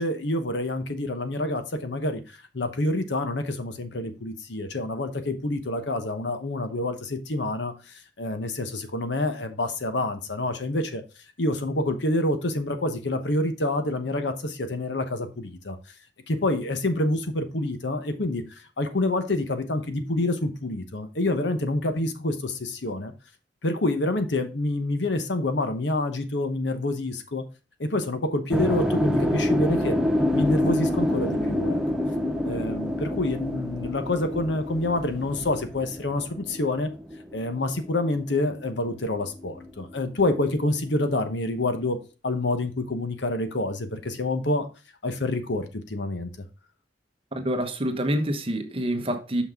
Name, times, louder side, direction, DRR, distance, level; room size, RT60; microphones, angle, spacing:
voice 1, 0.0-2.2 2.5-7.7 8.2-11.0 11.4-15.8 16.3-18.4 18.8-23.1 23.6-27.4 27.8-30.0 30.3-31.8 32.4-36.9 37.3-44.7 45.0-46.3, left 2 dB, 75° left, 1.0 m, -27 dB
sound 1, 28.5-38.6 38.9-40.5, left 1 dB, 5° right, 0.6 m, -27 dB
voice 2, 47.3-49.4, right 1 dB, 30° right, 1.0 m, -27 dB
6.2 x 5.8 x 3.6 m
head